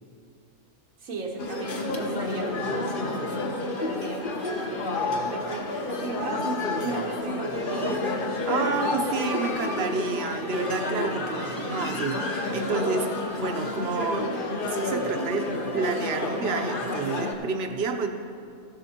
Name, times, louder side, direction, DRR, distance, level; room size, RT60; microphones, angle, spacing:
voice 1, 1.0-4.3 4.7-8.1 8.4-8.6, right 2 dB, 85° right, -1 dB, 1.4 m, -35 dB
sound 1, 1.4-17.3, left 2 dB, 45° left, 1.0 m, -30 dB
voice 2, 8.5-14.3 14.6-18.1, right 4 dB, 55° right, 6 dB, 0.9 m, -29 dB
14.5 x 12.0 x 2.9 m, 2.4 s
omnidirectional pair, 1.4 m